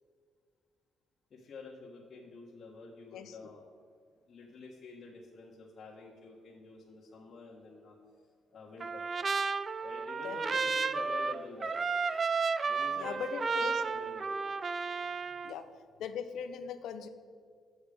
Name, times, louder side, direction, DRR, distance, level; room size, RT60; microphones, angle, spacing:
voice 1, 1.3-3.6 4.3-8.0 8.5-9.0 9.8-11.9 12.6-14.3, left 4 dB, 50° left, -5 dB, 1.5 m, -48 dB
Trumpet, 8.8-15.5, right 5 dB, 40° right, 0.4 m, -33 dB
voice 2, 13.0-13.8 15.4-15.6 16.0-17.1, left 7 dB, 80° left, 10 dB, 0.6 m, -39 dB
8.0 x 7.0 x 5.1 m, 2.1 s
cardioid pair, 90°, 0 cm